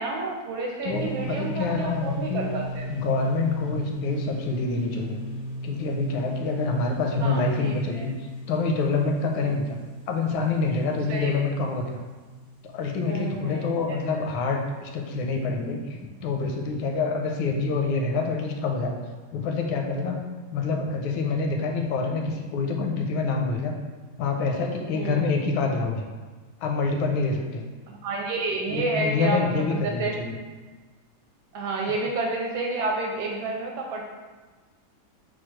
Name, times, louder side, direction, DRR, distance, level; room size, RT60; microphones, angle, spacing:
voice 1, 0.0-2.8 7.2-8.0 9.4-9.6 11.1-11.5 13.0-13.8 14.1-14.2 24.9-25.2 27.9-30.1 31.5-34.0, right 2 dB, 80° right, 0 dB, 1.3 m, -30 dB
voice 2, 0.8-2.5 2.9-5.2 5.6-8.1 8.5-9.8 10.1-12.0 12.6-19.0 19.3-20.2 20.5-23.7 24.2-26.1 26.6-27.6 28.7-30.4 31.9-32.0, left 4 dB, 85° left, 2 dB, 1.4 m, -26 dB
sound 1, 0.9-14.4, right 1 dB, 30° right, 0.8 m, -37 dB
4.5 x 2.2 x 4.5 m, 1.3 s
omnidirectional pair, 2.2 m